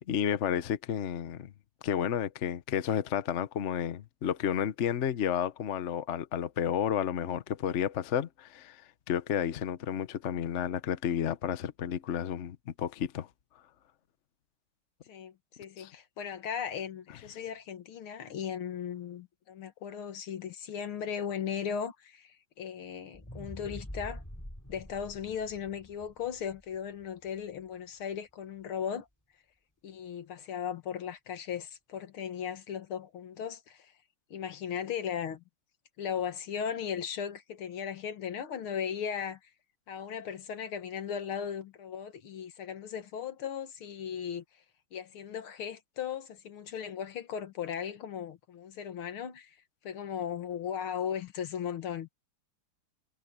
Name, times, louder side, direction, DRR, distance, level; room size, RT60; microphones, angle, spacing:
voice 1, 0.1-1.5 1.8-8.8 9.1-13.3 15.8-15.9, left 9 dB, 50° left, 0.8 m, -31 dB
voice 2, 15.1-24.2 24.7-29.1 29.8-33.9 34.3-35.4 36.0-39.4 39.9-44.4 44.9-49.5 49.8-52.1, left 8 dB, 80° left, 2.3 m, -37 dB
sound 1, 23.1-27.4 27.9-28.0, equal, 10° left, 5.1 m, -45 dB
omnidirectional pair, 2.3 m